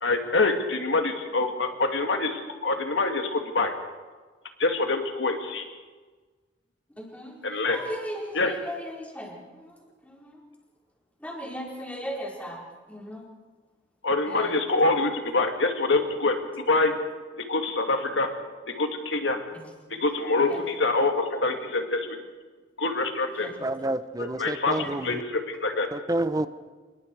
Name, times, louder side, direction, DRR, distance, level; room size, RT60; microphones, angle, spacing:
voice 1, 0.0-3.7 4.6-5.7 7.4-7.8 8.3-8.5 14.0-16.9 17.4-18.3 18.7-19.4 19.9-22.2 22.8-23.5 24.2-25.9, left 3 dB, 80° left, 5 dB, 2.4 m, -25 dB
voice 2, 7.0-10.4 11.2-13.2 14.2-14.5 19.5-19.7 20.4-20.6 23.3-23.5 24.7-24.9, equal, 10° left, -3 dB, 4.9 m, -38 dB
voice 3, 23.6-25.2 25.9-26.5, right 1 dB, 20° right, 12 dB, 0.8 m, -29 dB
26.5 x 22.5 x 4.8 m, 1.4 s
head